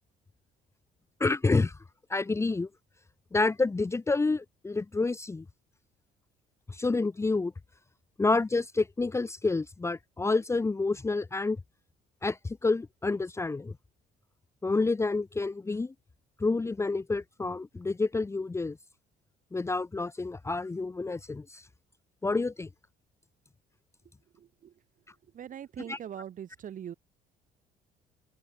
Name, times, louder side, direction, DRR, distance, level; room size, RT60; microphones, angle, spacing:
voice 1, 1.2-1.8 2.1-2.7 3.3-5.4 6.7-7.5 8.2-11.6 12.2-13.8 14.6-15.9 16.4-18.8 19.5-21.7 22.2-22.7 25.9-26.0, left 3 dB, 15° left, 0.9 m, -28 dB
voice 2, 24.3-24.7 25.3-26.9, right 9 dB, 50° right, 5.0 m, -42 dB
open air
cardioid pair, 110°, 17 cm